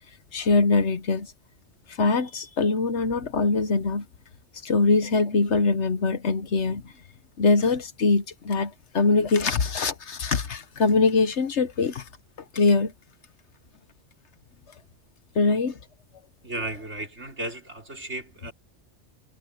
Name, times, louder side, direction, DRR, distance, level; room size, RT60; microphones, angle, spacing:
voice 1, 0.3-1.3 1.9-4.1 4.6-6.9 7.4-12.1 12.5-12.9 15.3-15.8, left 3 dB, 75° left, 1.4 m, -23 dB
voice 2, 16.4-18.5, right 2 dB, 75° right, 4.9 m, -34 dB
omnidirectional pair, 1.2 m